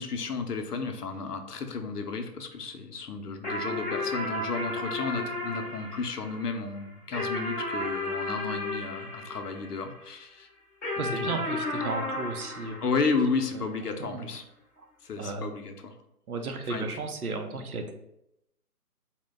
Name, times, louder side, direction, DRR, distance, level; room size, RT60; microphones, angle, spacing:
voice 1, 0.0-10.5 11.0-11.4 12.8-14.4 15.0-15.9 16.6-17.1, left 4 dB, 75° left, 6 dB, 0.7 m, -32 dB
sound 1, 3.4-10.1 10.8-13.6, left 1 dB, 10° left, 1.0 m, -34 dB
voice 2, 11.0-12.8 13.5-13.6 14.0-14.3 15.2-15.5 16.3-17.9, right 3 dB, 65° right, 5 dB, 0.7 m, -34 dB
4.4 x 2.1 x 3.4 m, 0.83 s
hypercardioid pair, 175°, 47 cm